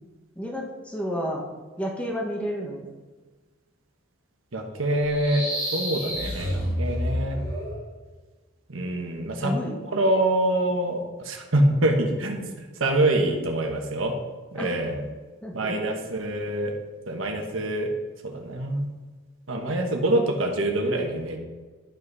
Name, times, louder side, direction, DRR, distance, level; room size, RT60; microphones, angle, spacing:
voice 1, 0.3-1.4 1.8-2.9 9.4-9.8 14.6-14.8 15.4-15.9, equal, 5° left, -1 dB, 1.3 m, -31 dB
voice 2, 4.5-7.4 8.7-9.5 9.9-14.1 14.5-15.0 15.5-16.7 17.1-17.9 18.2-18.9 19.5-21.4, right 1 dB, 75° right, 3 dB, 1.3 m, -25 dB
sound 1, 5.0-7.8, equal, 40° left, 2.7 m, -29 dB
11.5 x 5.7 x 4.1 m, 1.3 s
head